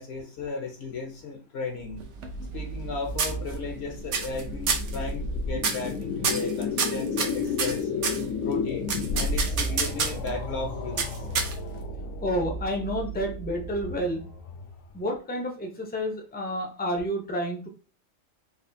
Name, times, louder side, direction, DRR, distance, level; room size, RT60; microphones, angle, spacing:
voice 1, 0.0-2.0 2.5-7.9 8.4-11.2, left 4 dB, 60° left, 3 dB, 0.8 m, -35 dB
sound 1, 1.8-15.0, left 3 dB, 85° left, 1.0 m, -32 dB
sound 2, 2.0-2.9 3.2-3.8 4.1-4.4 4.7-5.0 5.6-5.9 6.2-8.2 8.9-10.3 11.0-11.8, right 5 dB, 65° right, 1.0 m, -28 dB
voice 2, 12.2-14.3 14.9-17.7, equal, 15° left, 1 dB, 0.4 m, -30 dB
4.1 x 2.4 x 2.6 m, 0.35 s
omnidirectional pair, 1.3 m